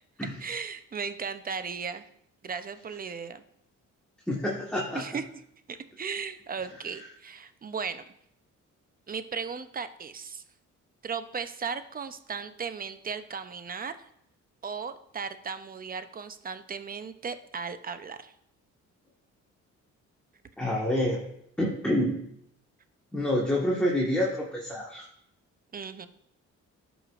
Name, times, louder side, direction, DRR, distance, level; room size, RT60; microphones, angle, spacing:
voice 1, 0.4-2.0 2.4-3.4 4.9-5.3 5.7-8.0 9.1-10.4 11.0-14.1 14.6-18.3 25.7-26.1, right 5 dB, 30° right, 11 dB, 0.6 m, -36 dB
voice 2, 4.3-5.0 20.6-21.2 21.6-22.2 23.1-25.0, left 1 dB, 5° left, -4 dB, 1.5 m, -27 dB
13.5 x 5.0 x 2.5 m, 0.74 s
cardioid pair, 90°, 30 cm